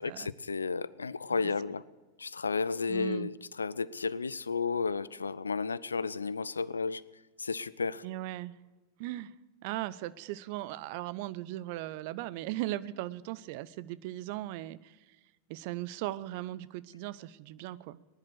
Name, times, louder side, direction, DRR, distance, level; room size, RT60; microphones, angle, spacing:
voice 1, 0.0-1.8 2.2-7.0 7.4-8.0, left 4 dB, 75° left, 20 dB, 0.5 m, -33 dB
voice 2, 2.9-3.3 8.0-8.6 9.0-9.3 9.6-15.0 15.5-18.0, right 15 dB, 45° right, 17 dB, 0.6 m, -38 dB
19.5 x 11.0 x 6.7 m, 1.2 s
figure-of-eight pair, 90°, 0 cm